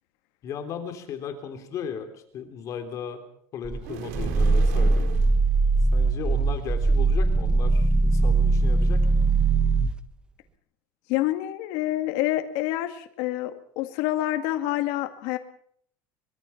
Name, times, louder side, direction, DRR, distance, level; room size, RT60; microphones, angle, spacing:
voice 1, 0.4-3.2 3.5-5.0 5.9-9.0, left 7 dB, 40° left, 6 dB, 3.4 m, -36 dB
Growling, 3.6-10.0, right 3 dB, 10° right, 1.0 m, -21 dB
sound 1, 3.8-5.4, right 8 dB, 80° right, 3.9 m, -37 dB
voice 2, 11.1-15.4, left 15 dB, 65° left, 6 dB, 2.0 m, -27 dB
24.5 x 22.5 x 5.8 m, 0.65 s
cardioid pair, 150°, 8 cm